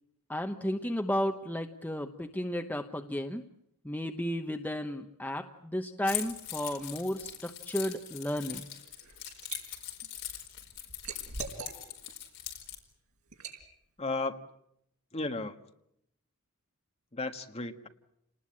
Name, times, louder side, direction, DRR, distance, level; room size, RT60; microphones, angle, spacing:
voice 1, 0.3-3.4 3.8-8.7, equal, 5° left, 5 dB, 1.0 m, -33 dB
Keys jangling, 6.0-12.8, left 11 dB, 55° left, 4.9 m, -41 dB
Liquid, 8.8-9.6 10.0-12.1 12.6-12.8 13.3-13.6, right 4 dB, 80° right, 4.8 m, -42 dB
voice 2, 14.0-14.4 15.1-15.5 17.1-17.9, left 3 dB, 30° left, 6 dB, 1.5 m, -34 dB
29.0 x 20.0 x 8.7 m, 0.79 s
head